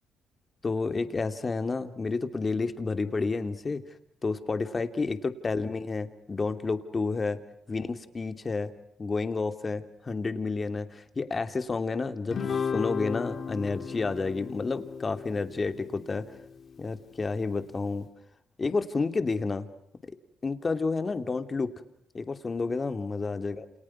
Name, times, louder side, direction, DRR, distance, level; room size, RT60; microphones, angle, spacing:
voice 1, 0.6-3.8 4.2-7.4 7.7-8.7 9.0-16.3 16.8-18.1 18.6-19.7 20.4-21.7 22.1-23.7, left 4 dB, 30° left, 9 dB, 2.8 m, -30 dB
Guitar, 12.3-16.9, left 6 dB, 55° left, 2.7 m, -35 dB
29.5 x 28.5 x 6.1 m, 0.70 s
cardioid pair, 75°, 0 cm